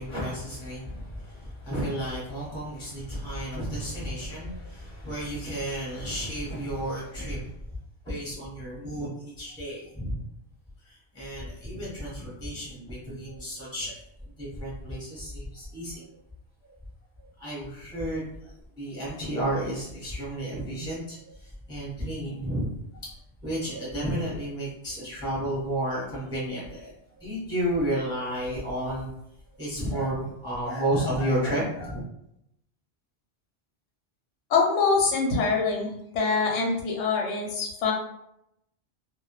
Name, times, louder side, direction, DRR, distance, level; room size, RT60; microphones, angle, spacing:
voice 1, 0.0-7.5 8.0-10.2 10.8-14.0 14.4-16.0 17.4-22.7 23.4-29.1 29.6-32.0, right 1 dB, 5° left, -7 dB, 0.9 m, -32 dB
voice 2, 34.5-37.9, left 4 dB, 80° left, 0 dB, 0.9 m, -24 dB
2.1 x 2.1 x 3.0 m, 0.79 s
omnidirectional pair, 1.2 m